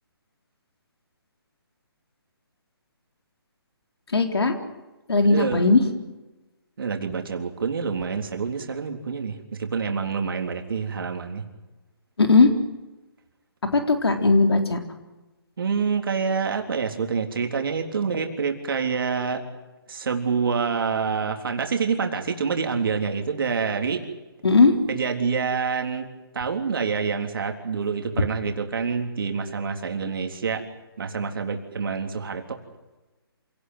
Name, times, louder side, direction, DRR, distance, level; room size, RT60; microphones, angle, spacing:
voice 1, 4.1-4.5 5.1-5.8 12.2-12.5 13.7-14.8 24.4-24.7, left 3 dB, 85° left, 5 dB, 4.0 m, -18 dB
voice 2, 5.3-5.8 6.8-11.4 15.6-19.4 19.9-24.0 24.9-26.1 26.3-30.6 31.0-32.6, right 5 dB, 60° right, 4 dB, 3.7 m, -27 dB
27.5 x 18.5 x 9.5 m, 1.1 s
hypercardioid pair, 160°, 13 cm